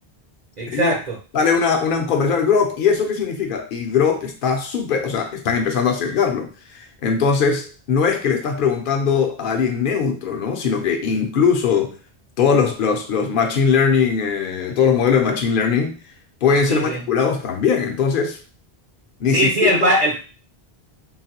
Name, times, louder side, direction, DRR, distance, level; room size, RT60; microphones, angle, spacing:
voice 1, 0.6-1.2 16.7-17.0 19.3-20.2, right 1 dB, 45° right, -1 dB, 0.8 m, -20 dB
voice 2, 1.3-12.0 12.4-16.0 16.4-18.4 19.2-19.5 19.8-19.9, left 6 dB, 60° left, 4 dB, 0.8 m, -20 dB
3.9 x 2.1 x 2.9 m, 0.34 s
omnidirectional pair, 1.1 m